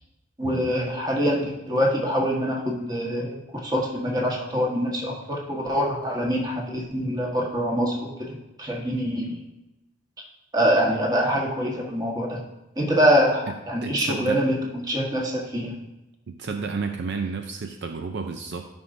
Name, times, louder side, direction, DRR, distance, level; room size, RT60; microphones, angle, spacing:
voice 1, 0.4-9.4 10.5-12.4 12.8-14.6 14.8-15.7, equal, 20° right, -2 dB, 1.4 m, -24 dB
voice 2, 13.8-14.5 16.3-18.7, right 4 dB, 60° right, 5 dB, 0.5 m, -31 dB
12.0 x 5.4 x 2.6 m, 0.96 s
head